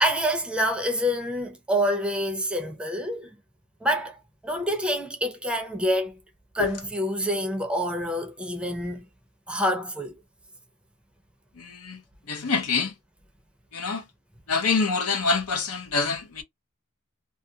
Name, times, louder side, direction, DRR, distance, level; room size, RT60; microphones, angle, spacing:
voice 1, 0.0-3.3 3.8-4.2 4.4-6.2 6.5-9.1 9.5-10.2, equal, 5° right, 0.5 m, -27 dB
voice 2, 11.6-12.0 12.3-12.9 13.7-14.1 14.5-16.4, left 4 dB, 75° left, 0.7 m, -26 dB
2.4 x 2.4 x 2.7 m
head